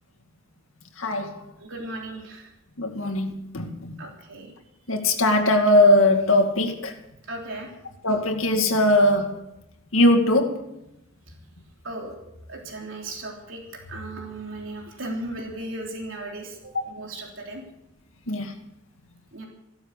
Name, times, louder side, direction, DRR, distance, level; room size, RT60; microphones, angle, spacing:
voice 1, 1.0-1.4 2.8-3.9 4.9-6.9 8.0-9.4 9.9-10.6 16.7-16.8 18.3-18.5, left 1 dB, 80° left, 5 dB, 2.2 m, -20 dB
voice 2, 1.6-2.5 4.0-4.5 7.3-7.7 11.8-17.6 19.3-19.5, right 1 dB, 70° right, 0 dB, 3.4 m, -36 dB
15.5 x 12.5 x 6.6 m, 0.86 s
head